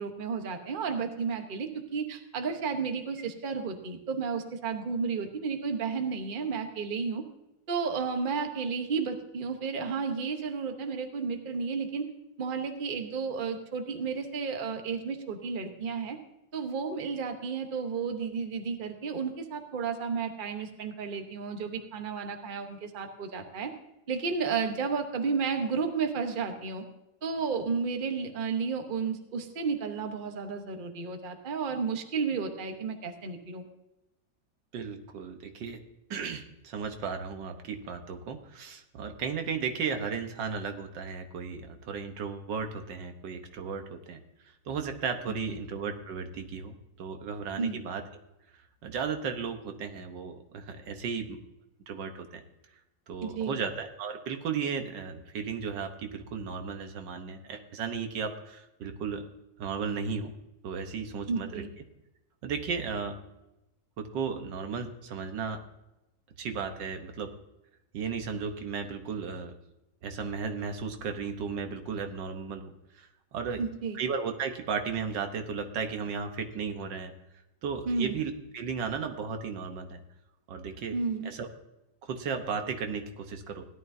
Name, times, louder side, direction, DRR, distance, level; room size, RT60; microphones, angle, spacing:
voice 1, 0.0-7.2 7.7-12.1 12.4-16.2 16.5-23.7 24.1-26.8 27.2-33.6 45.3-45.4 47.6-47.8 53.2-53.6 61.3-61.7 73.6-74.0 77.9-78.2 80.9-81.3, right 5 dB, 35° right, 5 dB, 1.0 m, -32 dB
voice 2, 34.7-35.8 36.1-44.2 44.7-48.0 48.8-51.4 51.9-52.4 53.1-59.3 59.6-60.3 60.6-61.6 62.4-63.2 64.0-65.6 66.4-67.3 67.9-69.5 70.0-73.6 73.9-77.1 77.6-80.0 80.5-81.0 81.2-81.5 82.0-83.7, right 5 dB, 75° right, 6 dB, 1.7 m, -35 dB
17.0 x 11.5 x 2.7 m, 0.93 s
omnidirectional pair, 2.0 m